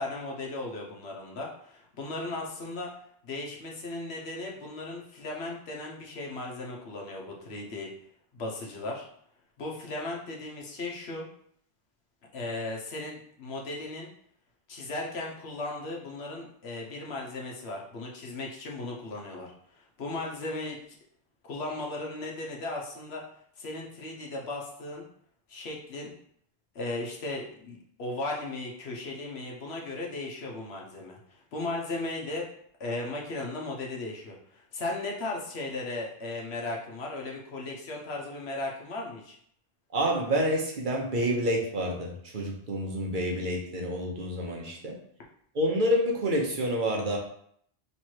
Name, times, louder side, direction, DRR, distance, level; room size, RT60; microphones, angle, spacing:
voice 1, 0.0-2.9 3.2-7.9 8.3-9.0 9.6-11.3 12.3-14.1 14.7-20.8 21.4-23.2 23.6-25.1 25.5-26.1 26.7-32.5 32.8-39.4, left 2 dB, 85° left, -1 dB, 1.1 m, -36 dB
voice 2, 39.9-44.9 45.5-47.2, equal, 55° right, 0 dB, 0.9 m, -28 dB
3.2 x 3.1 x 4.4 m, 0.66 s
omnidirectional pair, 1.1 m